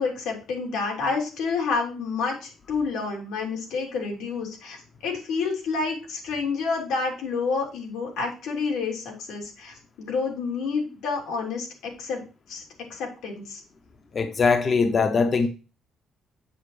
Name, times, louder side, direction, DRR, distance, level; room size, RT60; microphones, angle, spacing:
voice 1, 0.0-12.2 12.5-12.6 12.9-13.6, left 4 dB, 85° left, 3.3 m, -29 dB
voice 2, 14.1-15.5, left 4 dB, 30° left, 0.7 m, -21 dB
7.8 x 7.5 x 3.2 m
cardioid pair, 145°, 0 cm